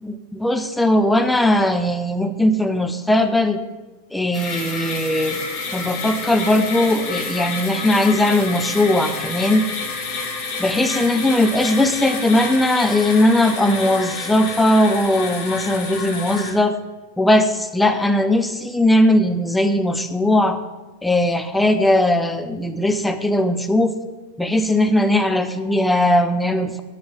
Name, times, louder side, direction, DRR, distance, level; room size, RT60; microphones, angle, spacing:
voice 1, 0.0-3.6 4.1-5.4 5.7-9.7 10.6-16.8 17.2-20.6 21.0-23.9 24.4-26.8, left 1 dB, 5° left, 9 dB, 0.7 m, -18 dB
sound 1, 4.3-16.5, left 4 dB, 45° left, 2.3 m, -29 dB
11.0 x 7.9 x 5.2 m, 1.2 s
figure-of-eight pair, 90°, 0 cm